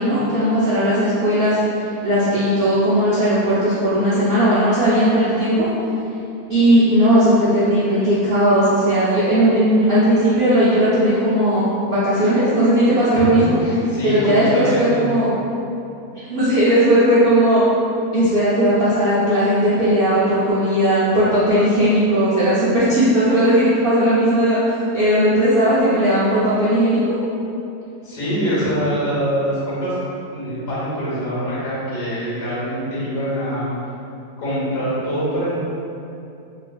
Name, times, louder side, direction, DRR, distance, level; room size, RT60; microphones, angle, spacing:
voice 1, 0.0-1.6 2.0-5.7 6.5-13.6 14.0-15.3 16.3-17.6 18.1-24.6 24.9-27.1, equal, 85° right, -11 dB, 0.5 m, -17 dB
voice 2, 13.1-15.1 28.0-30.0 30.3-33.7 34.4-35.5, equal, 90° left, -9 dB, 1.6 m, -24 dB
4.2 x 2.5 x 2.3 m, 2.7 s
omnidirectional pair, 1.7 m